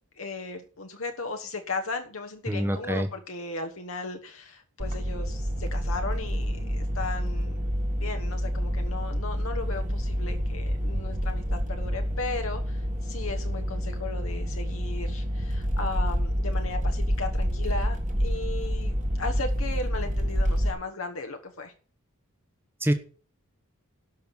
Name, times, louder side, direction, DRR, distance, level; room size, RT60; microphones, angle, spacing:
voice 1, 0.2-7.6 7.9-21.7, left 3 dB, 65° left, 5 dB, 1.2 m, -36 dB
voice 2, 2.5-3.1 22.8-22.9, equal, 10° right, 7 dB, 1.1 m, -25 dB
sound 1, 4.8-20.7, equal, 35° right, 1.8 m, -28 dB
12.5 x 5.8 x 7.3 m, 0.41 s
head